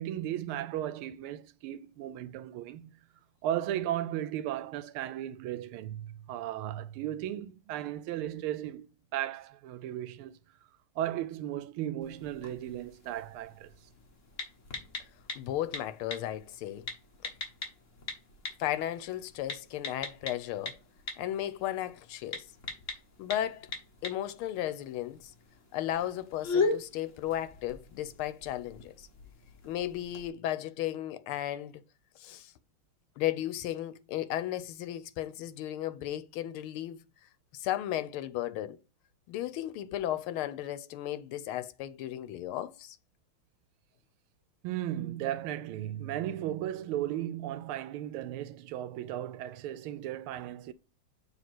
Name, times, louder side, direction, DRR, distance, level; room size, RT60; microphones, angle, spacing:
voice 1, 0.0-2.9 3.4-10.4 11.0-13.7 44.6-50.7, right 12 dB, 90° right, 1.5 m, -35 dB
sound 1, 12.0-30.3, left 4 dB, 40° left, 1.5 m, -40 dB
voice 2, 15.3-16.9 18.6-20.8 21.2-22.4 23.2-23.7 24.0-25.3 25.7-29.1 29.7-31.8 32.2-32.5 33.2-37.0 37.5-38.8 39.3-43.0, left 12 dB, 85° left, 1.6 m, -35 dB
7.4 x 2.9 x 5.9 m
omnidirectional pair, 2.3 m